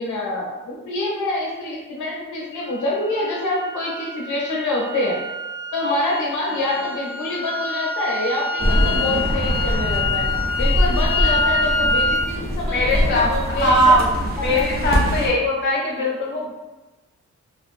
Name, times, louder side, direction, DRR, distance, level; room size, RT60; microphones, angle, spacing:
voice 1, 0.0-5.2 5.7-10.3 10.6-13.9 14.5-14.6, left 2 dB, 75° left, -3 dB, 0.7 m, -26 dB
sound 1, 2.6-12.3, left 2 dB, 15° left, 0.3 m, -26 dB
sound 2, 8.6-15.3, equal, 30° right, 0.7 m, -23 dB
voice 2, 12.7-14.1 14.4-16.5, equal, 40° left, -3 dB, 0.9 m, -20 dB
2.7 x 2.2 x 2.5 m, 1.1 s
cardioid pair, 85°, 30 cm